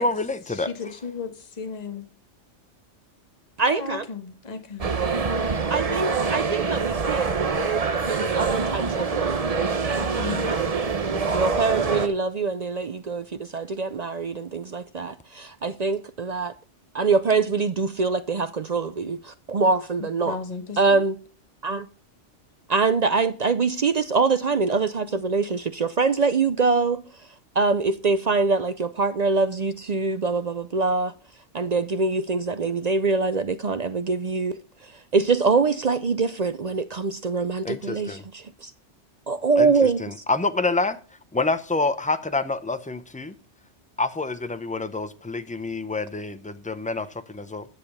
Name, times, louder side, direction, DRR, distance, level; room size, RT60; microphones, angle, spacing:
voice 1, 0.0-0.7 37.6-38.2 39.6-39.7 40.0-41.0 41.3-43.3 44.0-47.7, left 3 dB, 10° left, 0.4 m, -27 dB
voice 2, 0.5-2.0 3.7-5.0 10.1-10.5 20.0-21.0, left 5 dB, 35° left, 1.3 m, -35 dB
voice 3, 3.6-4.1 5.7-7.3 7.6-10.6 11.3-16.5 16.9-20.4 20.8-21.2 21.6-21.9 22.7-27.0 27.6-31.1 31.5-34.6 35.1-38.7 39.3-40.0, right 4 dB, 50° right, 0.5 m, -24 dB
sound 1, 4.8-12.1, right 4 dB, 35° right, 0.9 m, -25 dB
10.0 x 6.8 x 5.4 m
omnidirectional pair, 1.2 m